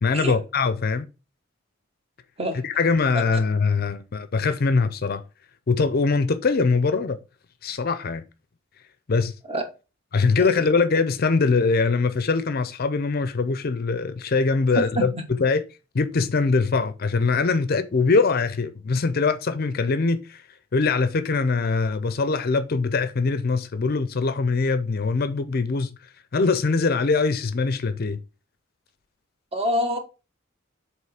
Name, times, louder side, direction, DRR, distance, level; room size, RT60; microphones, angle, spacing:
voice 1, 0.0-1.1 2.6-5.2 5.7-7.2 7.6-8.2 9.1-9.3 10.1-15.1 15.4-15.6 15.9-20.4 20.7-25.9 26.3-28.2, left 4 dB, 45° left, 0.5 m, -22 dB
voice 2, 14.7-15.2 29.5-30.0, equal, 30° right, 1.3 m, -26 dB
7.7 x 3.1 x 4.8 m
head